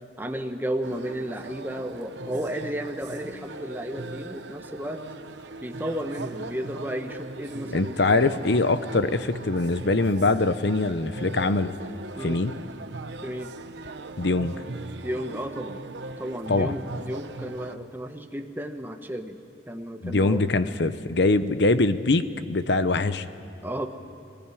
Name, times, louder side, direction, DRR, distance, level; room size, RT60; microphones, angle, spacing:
voice 1, 0.2-5.0 5.6-8.1 12.2-12.4 13.2-13.5 15.0-15.8 16.2-19.4 19.7-20.4 23.6-23.9, equal, 10° right, 5 dB, 1.1 m, -33 dB
sound 1, 0.8-17.8, right 2 dB, 70° right, 1.0 m, -39 dB
voice 2, 7.7-11.8 12.2-12.5 14.2-14.5 16.5-16.7 20.0-23.2, left 2 dB, 65° left, 12 dB, 0.8 m, -23 dB
23.0 x 19.5 x 9.9 m, 2.9 s
head